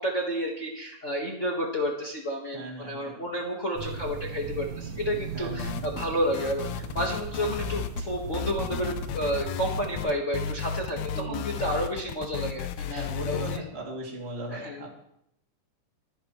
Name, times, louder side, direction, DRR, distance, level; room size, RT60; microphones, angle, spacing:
voice 1, 0.0-13.6 14.5-14.9, equal, 40° left, -1 dB, 1.1 m, -31 dB
voice 2, 2.5-3.2 5.3-6.0 11.1-11.5 12.9-14.9, right 1 dB, 20° right, -2 dB, 2.6 m, -37 dB
sound 1, 3.8-10.0, right 5 dB, 70° right, 1.9 m, -38 dB
sound 2, 5.6-6.1 6.3-8.1 8.3-13.6, left 8 dB, 80° left, 1.6 m, -34 dB
25.0 x 10.5 x 3.1 m, 0.75 s
omnidirectional pair, 3.7 m